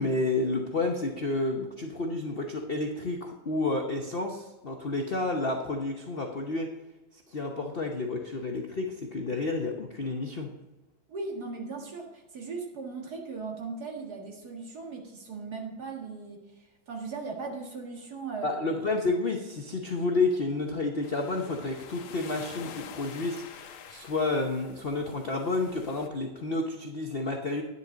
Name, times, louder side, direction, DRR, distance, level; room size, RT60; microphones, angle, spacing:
voice 1, 0.0-6.7 7.3-10.5 18.4-27.6, left 2 dB, 55° left, 2 dB, 0.6 m, -30 dB
voice 2, 11.1-16.4 16.9-18.6, right 4 dB, 50° right, 0 dB, 2.2 m, -38 dB
sound 1, 21.0-26.1, left 7 dB, 80° left, 1.7 m, -46 dB
10.5 x 9.8 x 3.9 m, 1.1 s
omnidirectional pair, 2.3 m